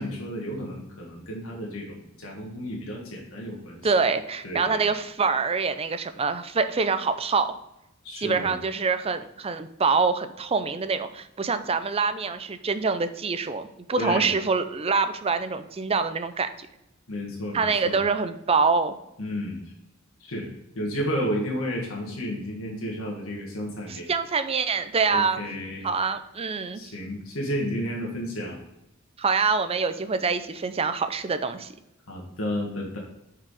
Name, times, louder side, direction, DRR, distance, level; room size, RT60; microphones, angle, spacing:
voice 1, 0.0-3.9 4.4-4.8 8.0-8.6 14.0-14.4 17.1-18.0 19.2-19.7 20.2-20.5 20.7-24.1 25.0-25.9 26.7-28.6 32.1-33.0, equal, 85° left, -2 dB, 1.6 m, -32 dB
voice 2, 3.8-7.5 8.2-16.7 17.5-18.9 23.9-25.4 25.8-26.8 29.2-31.7, right 4 dB, 30° right, 10 dB, 0.5 m, -25 dB
6.0 x 4.8 x 4.7 m, 0.87 s
head